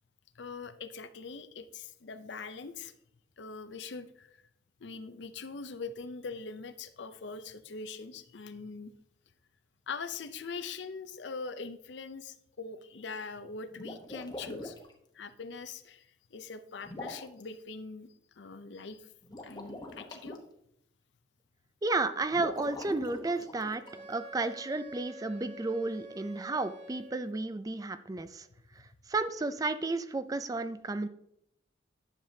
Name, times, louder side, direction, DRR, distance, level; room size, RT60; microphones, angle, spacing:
voice 1, 0.4-2.9 3.4-4.3 4.8-8.9 9.9-14.8 15.1-16.1 16.3-18.1 18.4-19.1 19.4-20.4, left 4 dB, 70° left, 11 dB, 0.6 m, -42 dB
sound 1, 13.7-14.9 16.8-17.4 19.2-20.4 22.3-24.0, left 2 dB, 25° left, 1.0 m, -43 dB
voice 2, 21.8-23.8 24.1-28.5 29.1-31.1, right 3 dB, 20° right, 11 dB, 0.4 m, -32 dB
Wind instrument woodwind instrument, 23.8-27.4, right 1 dB, 65° right, 3.1 m, -48 dB
10.5 x 6.8 x 2.7 m, 0.74 s
head